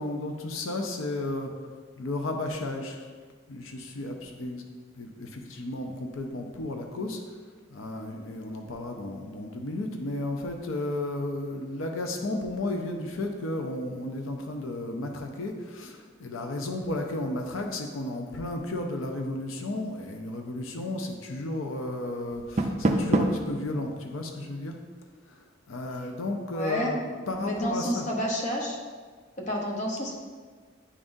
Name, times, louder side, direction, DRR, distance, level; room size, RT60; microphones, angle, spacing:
voice 1, 0.0-1.5 2.0-3.1 3.5-4.6 4.9-7.4 7.7-24.8 25.2-28.1, left 1 dB, 90° left, 3 dB, 0.6 m, -33 dB
Door, 22.3-23.5, right 1 dB, 35° right, 0.4 m, -25 dB
voice 2, 26.5-27.0 27.4-28.8 29.4-30.1, left 1 dB, 35° left, -1 dB, 0.9 m, -29 dB
9.8 x 3.6 x 2.6 m, 1.5 s
head